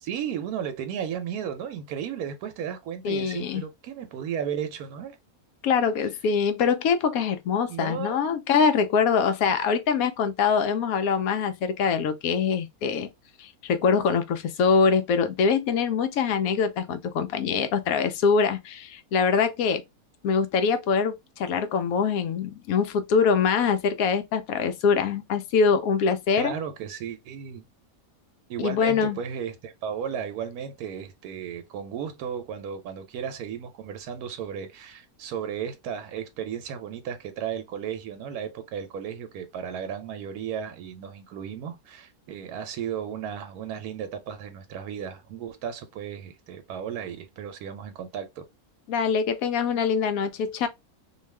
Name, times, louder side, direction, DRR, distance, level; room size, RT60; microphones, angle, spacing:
voice 1, 0.0-5.2 7.7-8.2 26.4-27.7 28.5-48.4, right 8 dB, 90° right, 1.1 m, -34 dB
voice 2, 3.0-3.6 5.6-13.1 13.4-19.8 20.2-26.5 28.6-29.2 48.9-50.7, left 6 dB, 75° left, 1.0 m, -24 dB
2.7 x 2.3 x 3.2 m
omnidirectional pair, 1.5 m